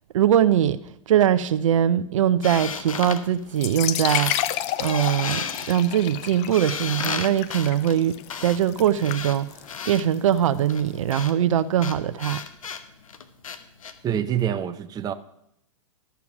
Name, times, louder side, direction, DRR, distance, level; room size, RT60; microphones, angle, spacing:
voice 1, 0.1-0.8 1.1-4.4 4.8-9.5 9.9-12.4, right 10 dB, 70° right, 13 dB, 0.6 m, -21 dB
sound 1, 2.4-3.8 4.0-4.5 4.8-10.0 10.7-13.9, left 6 dB, 80° left, 1.1 m, -33 dB
sound 2, 3.5-11.1, left 13 dB, 40° left, 0.6 m, -32 dB
voice 2, 14.0-15.1, right 9 dB, 20° right, 10 dB, 0.7 m, -26 dB
12.5 x 7.0 x 6.0 m, 0.76 s
hypercardioid pair, 110°, 17 cm